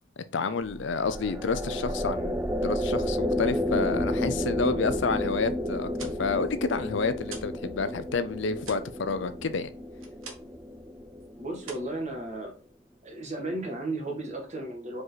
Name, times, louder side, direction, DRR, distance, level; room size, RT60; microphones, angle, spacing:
voice 1, 0.3-2.4 2.6-9.7, left 4 dB, 60° left, 0.5 m, -29 dB
sound 1, 0.6-12.1, left 1 dB, 10° right, 0.4 m, -32 dB
sound 2, 5.7-7.6 7.9-10.7 11.0-11.3 11.6-12.7, right 4 dB, 75° right, 1.4 m, -46 dB
voice 2, 11.4-12.5 13.0-15.0, right 2 dB, 35° right, 1.7 m, -34 dB
5.1 x 4.7 x 4.0 m
head